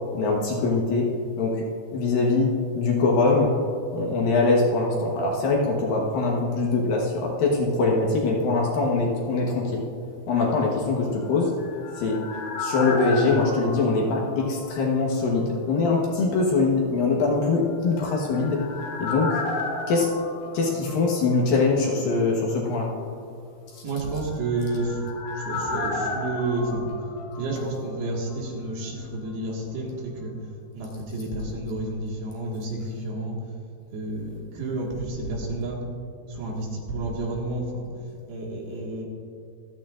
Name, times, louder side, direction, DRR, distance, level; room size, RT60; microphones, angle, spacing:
voice 1, 0.1-1.1 1.4-1.6 1.9-3.5 3.9-9.8 10.3-11.5 12.0-12.2 12.6-18.6 19.0-19.4 19.9-20.1 20.5-22.9, left 3 dB, 65° left, -2 dB, 2.6 m, -23 dB
sound 1, 11.3-15.1 15.4-15.5 17.9-21.6 21.8-21.9 24.2-28.1 28.3-28.4, left 3 dB, 85° left, 3.8 m, -33 dB
voice 2, 23.8-25.0 25.3-26.8 27.3-30.3 30.7-33.4 33.9-35.8 36.3-37.9 38.3-39.0, right 2 dB, 70° right, -2 dB, 3.6 m, -30 dB
26.0 x 8.7 x 2.5 m, 2.4 s
omnidirectional pair, 4.9 m